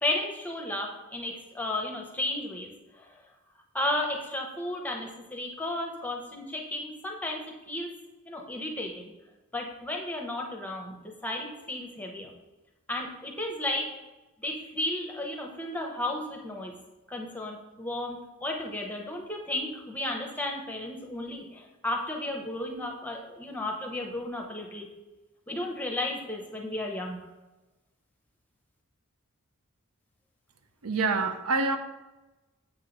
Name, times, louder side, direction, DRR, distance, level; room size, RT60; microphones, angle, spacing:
voice 1, 0.0-3.1 3.7-7.9 8.2-9.1 9.5-11.0 11.2-12.3 12.9-13.9 14.4-16.7 17.1-24.9 25.5-27.2, left 1 dB, 5° left, 1 dB, 0.7 m, -33 dB
voice 2, 30.8-31.8, right 3 dB, 80° right, 8 dB, 0.6 m, -26 dB
7.4 x 3.0 x 5.1 m, 1.1 s
head